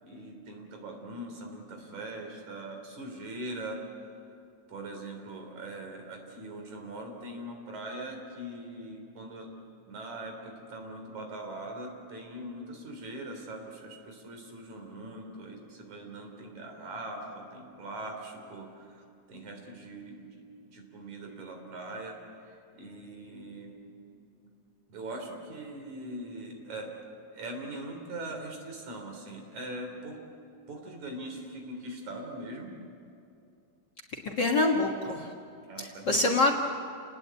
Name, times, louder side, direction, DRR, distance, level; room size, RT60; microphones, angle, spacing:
voice 1, 0.0-3.8 4.1-4.2 4.7-9.5 9.8-20.3 20.6-24.0 24.4-24.5 24.9-26.9 27.3-30.2 30.7-32.7 35.7-36.5, right 1 dB, 70° right, 3 dB, 5.0 m, -41 dB
voice 2, 34.2-35.3 35.8-36.5, left 2 dB, 45° left, 1 dB, 1.8 m, -25 dB
30.0 x 19.5 x 8.4 m, 2.5 s
omnidirectional pair, 3.4 m